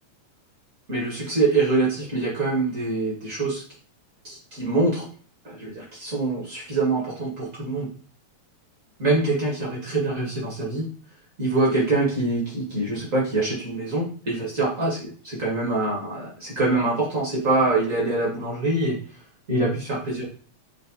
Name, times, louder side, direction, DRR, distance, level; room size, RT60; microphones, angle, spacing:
voice 1, 0.9-3.6 4.2-5.0 5.4-7.9 9.0-10.8 11.4-19.0 19.5-20.2, right 2 dB, 50° right, -4 dB, 0.9 m, -24 dB
6.3 x 2.5 x 2.6 m, 0.43 s
omnidirectional pair, 3.4 m